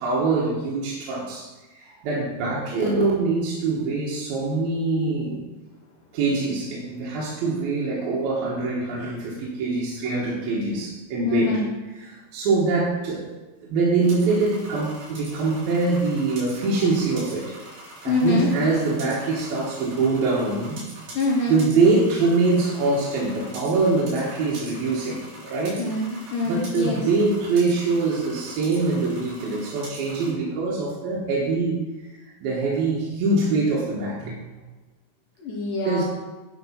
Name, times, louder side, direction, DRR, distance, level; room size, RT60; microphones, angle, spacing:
voice 1, 0.0-1.5 1.8-5.4 6.1-11.6 12.0-13.3 13.6-17.5 18.0-20.8 21.5-25.8 26.4-31.8 32.1-34.5 35.8-36.0, right 3 dB, 75° right, -5 dB, 3.2 m, -24 dB
voice 2, 11.2-11.6 18.1-18.5 21.1-21.6 25.8-27.0 35.4-36.0, left 3 dB, 65° left, -2 dB, 2.5 m, -25 dB
sound 1, 14.0-30.3, right 1 dB, 50° right, 4.6 m, -43 dB
10.5 x 4.7 x 5.6 m, 1.2 s
omnidirectional pair, 4.4 m